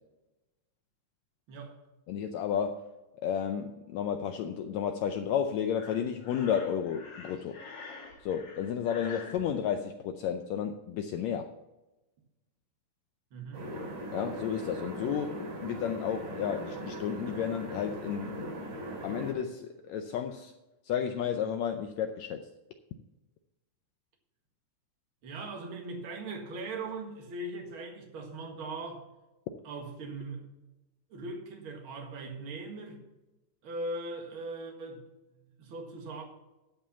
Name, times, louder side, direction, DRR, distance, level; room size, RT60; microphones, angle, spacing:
voice 1, 2.1-2.9 3.2-7.6 8.2-11.5 14.1-18.5 19.0-20.5 20.8-22.5, left 8 dB, 80° left, 6 dB, 1.6 m, -32 dB
Breathing, 5.7-9.4, left 4 dB, 40° left, 1.9 m, -46 dB
voice 2, 13.3-13.8 25.2-29.0 29.6-30.4 31.1-33.0 33.6-35.0 35.4-36.2, right 2 dB, 45° right, 2 dB, 2.2 m, -40 dB
sound 1, 13.5-19.3, right 1 dB, 75° right, 4.9 m, -39 dB
11.5 x 5.5 x 6.9 m, 1.0 s
omnidirectional pair, 3.8 m